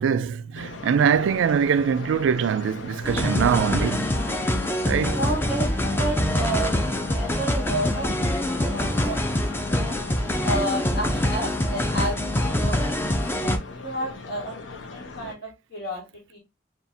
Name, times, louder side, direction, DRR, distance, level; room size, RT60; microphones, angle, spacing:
voice 1, 0.0-4.1 4.9-5.2, right 7 dB, 75° right, 0.3 m, -23 dB
sound 1, 0.5-15.3, left 3 dB, 70° left, 0.7 m, -39 dB
sound 2, 3.0-13.6, left 1 dB, 10° left, 0.5 m, -25 dB
voice 2, 5.1-10.0 10.4-12.9 13.2-14.6 14.9-16.0 16.3-16.4, right 1 dB, 50° left, 1.6 m, -32 dB
6.9 x 2.4 x 2.6 m
head